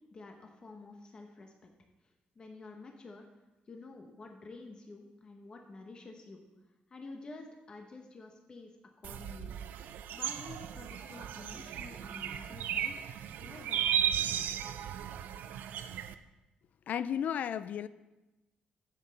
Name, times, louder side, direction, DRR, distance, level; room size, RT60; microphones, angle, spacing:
voice 1, 0.0-1.7 2.0-3.3 3.7-6.4 6.9-8.7 9.0-9.5 10.1-13.0 13.4-14.8, left 3 dB, 30° left, 3 dB, 0.9 m, -50 dB
sound 1, 9.0-16.1, right 9 dB, 90° right, 0.4 m, -35 dB
voice 2, 16.9-17.9, left 9 dB, 60° left, 16 dB, 0.3 m, -33 dB
9.9 x 7.7 x 4.1 m, 1.0 s
cardioid pair, 150°, 3 cm